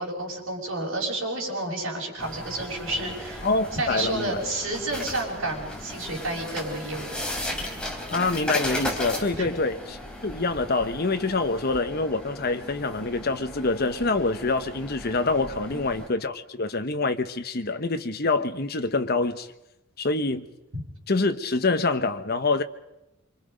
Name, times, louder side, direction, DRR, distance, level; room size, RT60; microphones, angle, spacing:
voice 1, 0.0-3.5 3.7-7.1 9.4-9.5 15.6-15.8, right 2 dB, 75° right, 6.4 m, -30 dB
sound 1, 2.2-16.1, left 1 dB, 5° left, 3.4 m, -36 dB
voice 2, 3.4-4.4 8.1-10.0 10.2-19.5 20.0-20.5 21.1-22.6, left 3 dB, 50° left, 1.1 m, -26 dB
26.0 x 25.0 x 5.2 m
head